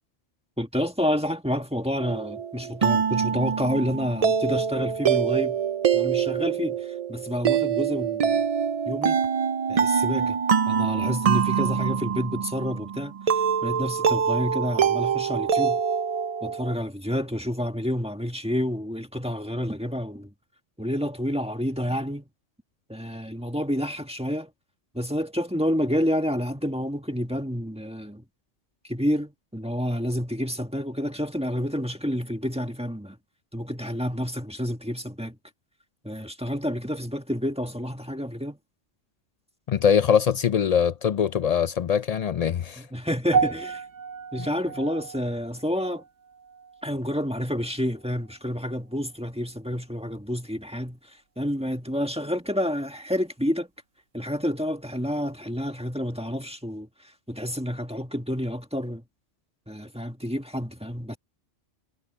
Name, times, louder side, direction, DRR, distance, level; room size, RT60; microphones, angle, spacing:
voice 1, 0.6-5.6 5.9-8.4 8.8-9.2 9.7-10.4 10.7-15.8 16.4-20.3 20.8-22.2 22.9-24.5 24.9-28.2 28.9-33.2 33.5-35.4 36.0-38.6 42.8-43.8 44.3-46.0 46.8-53.7 54.1-59.0 59.7-61.2, equal, 5° right, 1.7 m, -29 dB
sound 1, 2.0-16.7, right 7 dB, 50° right, 0.4 m, -25 dB
voice 2, 39.7-42.8, left 7 dB, 70° left, 0.3 m, -22 dB
sound 2, 43.3-47.7 48.0-48.4 49.0-49.1, right 6 dB, 90° right, 1.7 m, -32 dB
omnidirectional pair, 1.2 m